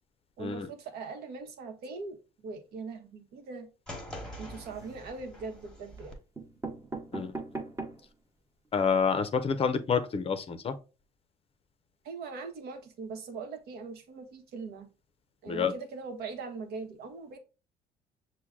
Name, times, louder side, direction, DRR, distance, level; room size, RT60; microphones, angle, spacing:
voice 1, 0.4-3.7 4.4-6.2 12.0-14.9 15.4-17.4, right 4 dB, 70° right, 1.0 m, -41 dB
cage bang, 3.9-6.1, equal, 5° left, 1.1 m, -44 dB
sound 1, 4.6-5.2 6.0-6.1 6.4-8.2 8.7-8.8 8.9-9.0 9.3-9.5, right 3 dB, 20° right, 0.9 m, -40 dB
voice 2, 8.7-10.8 15.5-15.7, left 6 dB, 35° left, 0.5 m, -28 dB
6.1 x 2.2 x 3.5 m
cardioid pair, 110°, 17 cm